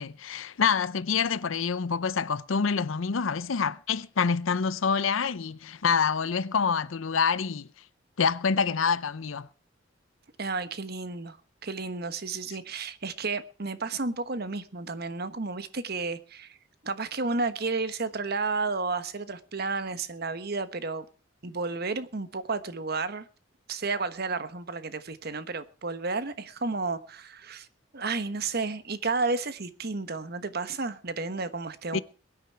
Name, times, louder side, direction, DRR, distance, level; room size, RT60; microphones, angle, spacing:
voice 1, 0.0-7.7 8.2-9.5 31.9-32.0, left 6 dB, 90° left, 0.6 m, -26 dB
voice 2, 10.4-11.4 11.6-16.6 16.8-21.0 21.4-23.3 23.7-27.7 27.9-32.0, right 3 dB, 50° right, 1.2 m, -32 dB
22.0 x 9.7 x 4.6 m
head